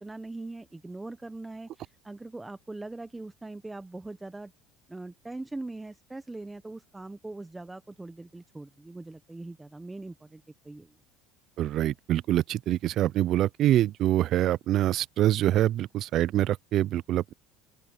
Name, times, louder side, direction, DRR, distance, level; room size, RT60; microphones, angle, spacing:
voice 1, 0.0-4.5 4.9-10.9, right 2 dB, 10° right, 0.9 m, -41 dB
voice 2, 11.6-17.3, right 13 dB, 50° right, 0.4 m, -25 dB
open air
supercardioid pair, 120°, 0 cm